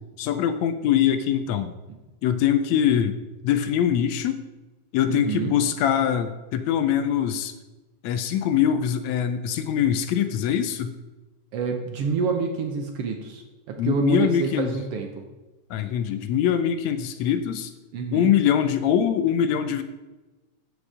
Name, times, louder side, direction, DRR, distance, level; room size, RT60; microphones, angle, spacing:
voice 1, 0.2-1.7 2.2-4.4 4.9-7.5 8.0-11.0 13.8-14.8 15.7-17.7 18.1-19.8, left 9 dB, 80° left, 10 dB, 1.8 m, -23 dB
voice 2, 5.1-5.5 11.5-13.4 13.7-15.2 17.9-18.3, right 5 dB, 65° right, 3 dB, 1.6 m, -27 dB
13.5 x 5.1 x 4.8 m, 1.1 s
omnidirectional pair, 3.3 m